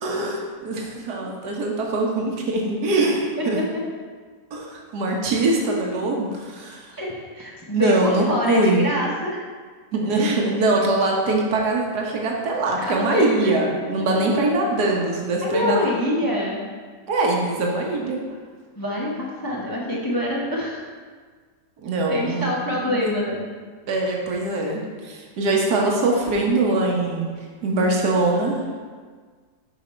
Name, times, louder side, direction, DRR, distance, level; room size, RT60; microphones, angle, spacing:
voice 1, 0.0-3.6 4.5-6.9 7.7-8.8 9.9-15.9 17.1-18.2 21.8-22.5 22.9-23.0 23.9-27.3 27.6-28.6, right 2 dB, 85° right, -1 dB, 1.6 m, -22 dB
voice 2, 6.9-9.4 12.8-14.3 15.4-16.6 18.8-20.8 22.1-23.4, left 1 dB, 15° left, -4 dB, 0.8 m, -26 dB
6.8 x 5.3 x 4.3 m, 1.6 s
omnidirectional pair, 1.7 m